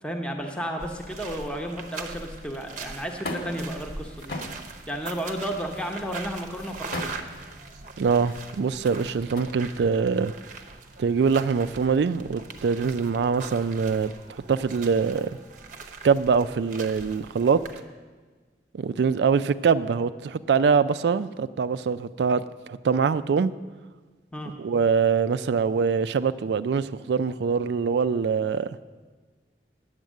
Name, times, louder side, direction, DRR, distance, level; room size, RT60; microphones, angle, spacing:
voice 1, 0.0-4.3 4.9-7.1 24.3-24.5, equal, 5° left, 2 dB, 0.9 m, -32 dB
sound 1, 0.8-17.8, right 4 dB, 45° right, 0.8 m, -42 dB
sound 2, 2.6-9.4, left 1 dB, 60° left, 1.5 m, -41 dB
voice 2, 8.0-10.3 11.0-14.1 14.5-15.3 16.0-17.6 18.7-23.5 24.6-28.7, right 5 dB, 75° right, 13 dB, 0.3 m, -23 dB
9.3 x 8.1 x 7.5 m, 1.4 s
head